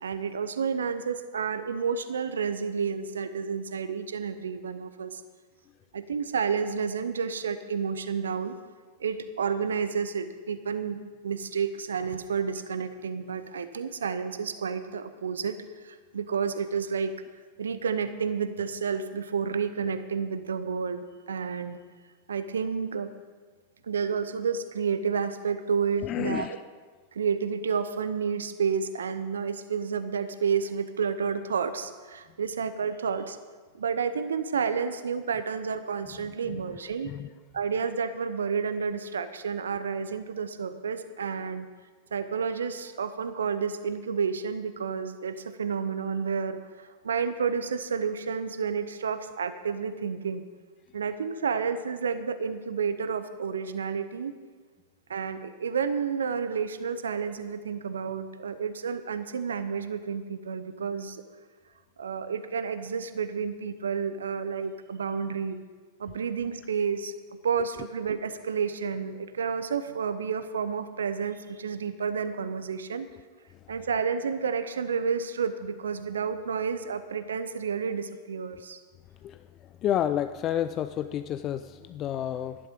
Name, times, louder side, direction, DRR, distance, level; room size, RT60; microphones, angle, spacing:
voice 1, 0.0-5.2 5.9-8.5 9.0-17.1 17.6-21.8 22.3-23.1 23.8-26.5 27.1-33.4 33.7-37.1 37.5-41.7 42.1-50.4 50.9-54.4 55.1-61.2 62.0-65.6 66.0-67.1 67.4-73.1 73.7-78.8, right 6 dB, 75° right, 12 dB, 0.7 m, -30 dB
voice 2, 26.0-26.6 37.0-37.3 79.2-79.4 79.8-82.6, left 10 dB, 35° left, 11 dB, 0.4 m, -30 dB
12.0 x 10.5 x 5.2 m, 1.5 s
figure-of-eight pair, 95°, 0 cm